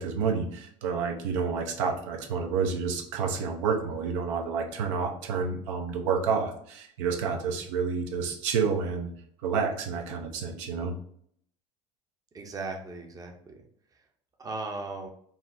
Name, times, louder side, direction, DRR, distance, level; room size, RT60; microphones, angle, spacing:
voice 1, 0.0-9.1 9.4-10.9, right 5 dB, 80° right, 3 dB, 0.6 m, -29 dB
voice 2, 12.3-13.5 14.4-15.1, right 3 dB, 20° right, 3 dB, 0.6 m, -37 dB
3.9 x 2.0 x 2.5 m, 0.64 s
supercardioid pair, 90°, 16 cm